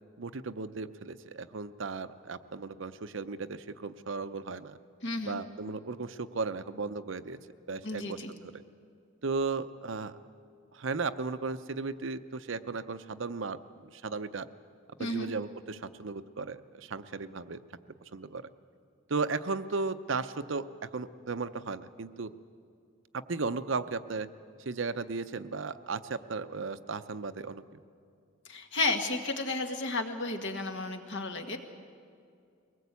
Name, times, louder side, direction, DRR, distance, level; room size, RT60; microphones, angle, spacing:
voice 1, 0.2-4.8 5.2-7.4 7.7-8.2 8.4-8.6 9.2-10.1 10.7-14.5 15.0-17.6 18.1-18.4 19.1-20.7 20.9-22.3 23.1-24.3 24.7-27.6, right 4 dB, 75° right, 11 dB, 0.7 m, -35 dB
voice 2, 5.0-5.4 7.8-8.3 15.0-15.3 28.5-31.6, left 3 dB, 65° left, 5 dB, 1.8 m, -32 dB
22.5 x 19.0 x 8.3 m, 2.4 s
head